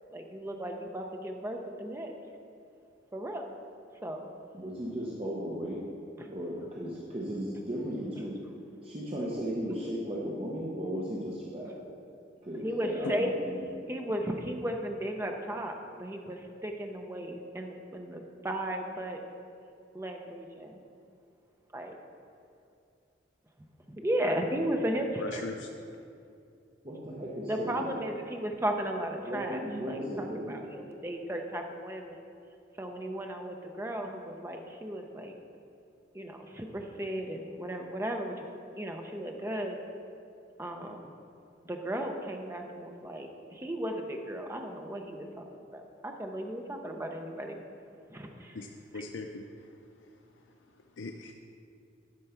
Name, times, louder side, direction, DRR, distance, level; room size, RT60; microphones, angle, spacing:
voice 1, 0.1-2.1 3.1-3.5 4.0-4.3 6.2-6.3 12.6-13.3 13.9-19.2 19.9-20.8 21.7-22.0 23.9-25.5 27.5-32.2 32.8-35.3 36.1-38.5 38.7-39.8 40.6-41.1 41.7-45.5 45.7-47.6 48.1-48.6 48.9-49.0, right 1 dB, 15° right, 3 dB, 0.7 m, -35 dB
voice 2, 4.5-5.8 6.3-8.4 8.8-11.7 12.4-13.6 26.8-27.9 29.2-30.7, equal, 30° right, -6 dB, 1.0 m, -36 dB
voice 3, 25.2-25.7 48.5-48.7 48.9-49.4 51.0-51.3, left 3 dB, 80° left, 3 dB, 0.5 m, -38 dB
11.5 x 4.6 x 5.8 m, 2.5 s
head